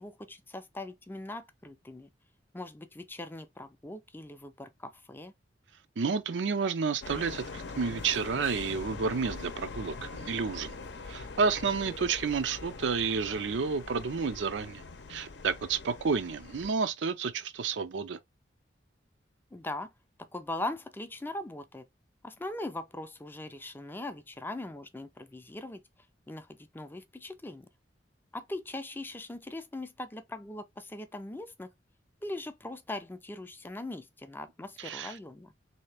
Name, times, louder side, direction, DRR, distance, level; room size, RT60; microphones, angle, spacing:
voice 1, 0.0-2.1 2.5-5.3 19.5-19.9 20.3-21.8 22.2-25.8 26.3-27.7 28.3-31.7 32.2-35.5, left 2 dB, 10° left, 0.4 m, -40 dB
voice 2, 6.0-10.7 11.1-14.8 15.1-18.2 34.8-35.2, right 5 dB, 85° right, 0.5 m, -30 dB
sound 1, 7.0-16.7, left 3 dB, 70° left, 0.6 m, -43 dB
3.2 x 2.8 x 3.3 m
head